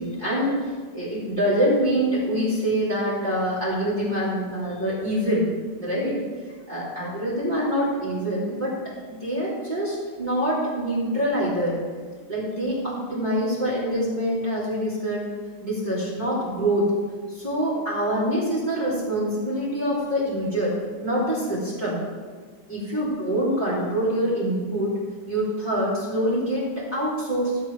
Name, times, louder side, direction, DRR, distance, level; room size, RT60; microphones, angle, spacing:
voice 1, 0.0-5.5 5.8-6.2 6.5-11.8 12.3-15.2 15.6-16.9 17.3-22.0 22.7-25.0 25.3-27.6, equal, 20° right, -9 dB, 3.3 m, -25 dB
13.5 x 7.4 x 4.7 m, 1.5 s
omnidirectional pair, 2.2 m